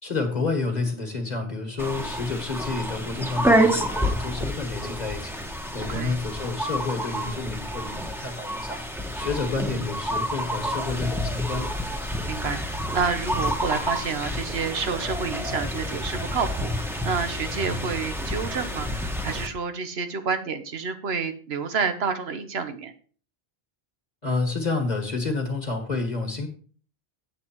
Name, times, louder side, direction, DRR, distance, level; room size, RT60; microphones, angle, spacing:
voice 1, 0.0-5.4 5.7-8.8 9.1-11.7 24.2-26.5, left 3 dB, 45° left, 4 dB, 1.8 m, -29 dB
sound 1, 1.8-19.5, equal, ahead, 1.1 m, -28 dB
voice 2, 12.3-22.9, right 5 dB, 80° right, 9 dB, 1.3 m, -29 dB
8.3 x 8.0 x 4.6 m, 0.42 s
omnidirectional pair, 1.0 m